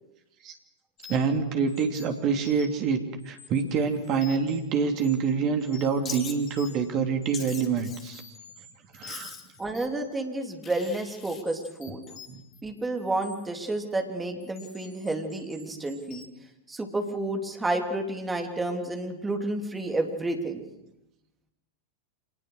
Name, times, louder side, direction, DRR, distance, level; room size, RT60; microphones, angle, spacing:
sound 1, 1.0-1.3 1.7-2.8 3.2-4.6 5.0-5.3 5.6-6.9 7.2-7.6 8.1-10.2 10.7-10.9 11.5-13.7 14.4-16.3, left 6 dB, 40° left, 4.0 m, -49 dB
voice 1, 1.1-8.2 8.9-9.4 12.3-12.4, right 5 dB, 35° right, 5 dB, 3.0 m, -26 dB
Wild animals, 6.0-6.4 7.3-8.2 9.1-9.6 10.6-11.4, left 6 dB, 25° left, 2.5 m, -40 dB
voice 2, 9.6-12.0 12.6-16.3 16.7-20.6, right 2 dB, 10° right, 3 dB, 3.3 m, -30 dB
26.0 x 20.0 x 6.6 m, 0.88 s
figure-of-eight pair, 90°, 0 cm